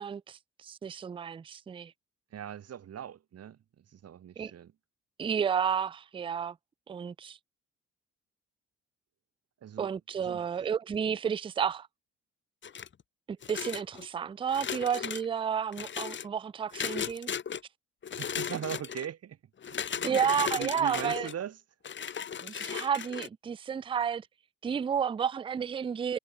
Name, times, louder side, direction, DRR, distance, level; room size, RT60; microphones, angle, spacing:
voice 1, 0.0-1.9 4.4-4.5 5.2-6.6 6.9-7.4 9.8-11.9 13.3-17.3 20.0-21.3 22.4-24.3 24.6-26.2, right 7 dB, 20° right, 0.3 m, -31 dB
voice 2, 2.3-4.7 9.6-9.9 10.2-10.4 18.1-19.4 19.7-21.6, right 9 dB, 60° right, 1.3 m, -40 dB
sound 1, 12.6-13.0 13.4-14.1 14.5-15.2 15.7-16.3 16.7-17.6 18.0-19.1 19.6-21.3 21.8-23.3, left 7 dB, 40° left, 0.9 m, -36 dB
cardioid pair, 75°, 29 cm